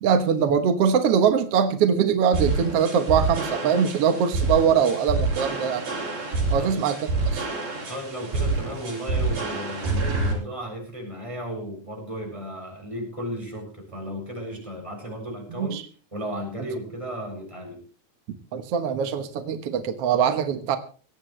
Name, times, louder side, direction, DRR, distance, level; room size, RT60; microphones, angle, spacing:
voice 1, 0.0-5.9 6.5-7.5 15.6-15.8 18.5-20.8, right 7 dB, 65° right, 8 dB, 1.6 m, -22 dB
sound 1, 2.3-10.3, right 3 dB, 85° right, 9.2 m, -27 dB
voice 2, 6.5-6.9 7.9-15.8 16.1-17.8, equal, 10° right, 1 dB, 7.4 m, -34 dB
21.0 x 18.0 x 3.3 m, 0.39 s
omnidirectional pair, 4.3 m